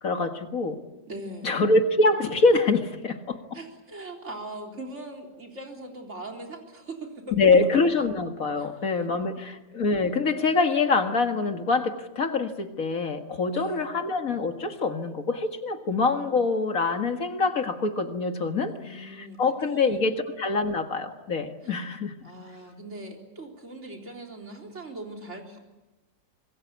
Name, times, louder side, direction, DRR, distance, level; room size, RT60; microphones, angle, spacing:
voice 1, 0.0-0.8 1.4-3.4 7.4-22.1, left 3 dB, 55° left, 6 dB, 2.2 m, -25 dB
voice 2, 1.1-1.6 3.5-7.5 8.6-8.9 13.5-13.9 18.7-19.4 19.7-20.1 21.6-21.8 22.2-25.6, right 1 dB, 45° right, 1 dB, 4.2 m, -40 dB
26.0 x 22.0 x 8.3 m, 1.0 s
omnidirectional pair, 1.7 m